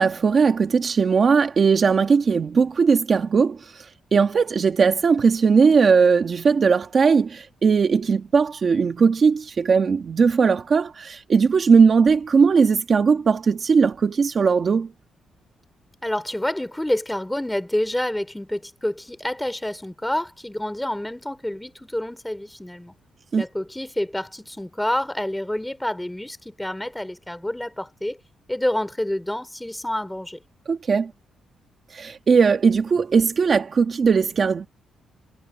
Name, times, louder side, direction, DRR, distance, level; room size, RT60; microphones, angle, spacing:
voice 1, 0.0-14.9 23.3-23.4 30.7-31.1 31.9-34.7, right 5 dB, 35° right, 1.4 m, -19 dB
voice 2, 16.0-22.9 23.4-28.2 28.5-30.4, left 1 dB, 5° left, 3.3 m, -28 dB
cardioid pair, 160°, 0 cm